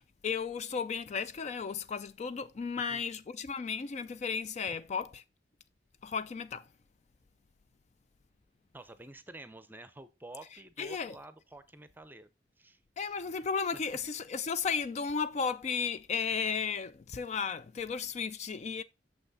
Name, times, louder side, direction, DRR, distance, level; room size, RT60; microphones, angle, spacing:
voice 1, 0.0-5.1 6.0-6.7 10.8-11.2 13.0-18.8, left 5 dB, 40° left, 0.4 m, -34 dB
voice 2, 8.7-12.3 12.6-12.8, right 2 dB, 10° right, 0.6 m, -50 dB
6.4 x 5.8 x 4.0 m
head